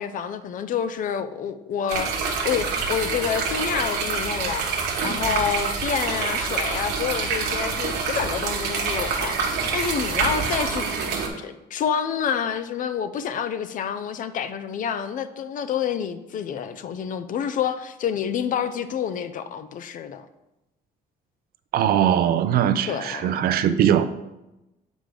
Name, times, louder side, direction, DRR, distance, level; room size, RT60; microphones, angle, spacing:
voice 1, 0.0-4.7 5.0-10.9 11.4-20.3 22.9-23.3, left 8 dB, 50° left, 0.5 m, -28 dB
sound 1, 1.9-11.3, right 5 dB, 85° right, 1.2 m, -26 dB
voice 2, 21.7-24.1, right 10 dB, 65° right, 0.5 m, -20 dB
7.2 x 5.0 x 3.8 m
cardioid pair, 110°, 17 cm